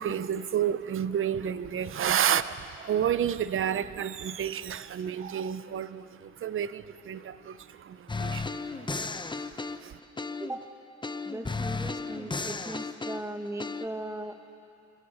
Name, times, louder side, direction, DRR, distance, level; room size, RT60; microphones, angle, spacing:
voice 1, 0.0-10.0, right 9 dB, 45° right, 14 dB, 0.7 m, -31 dB
sound 1, 8.1-10.6 11.0-13.9, left 3 dB, 15° left, 0.8 m, -34 dB
voice 2, 11.2-14.4, right 1 dB, 10° right, 5 dB, 1.7 m, -38 dB
27.0 x 16.5 x 6.4 m, 2.6 s
cardioid pair, 90°, 30 cm